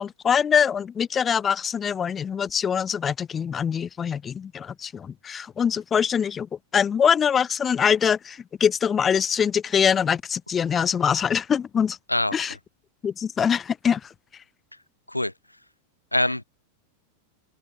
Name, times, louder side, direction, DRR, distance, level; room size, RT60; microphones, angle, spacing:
voice 1, 0.0-6.5 6.7-12.0 12.3-12.5 13.0-14.0, left 7 dB, 20° left, 6.1 m, -23 dB
voice 2, 16.1-16.4, left 1 dB, 85° left, 7.7 m, -23 dB
figure-of-eight pair, 90°, 0 cm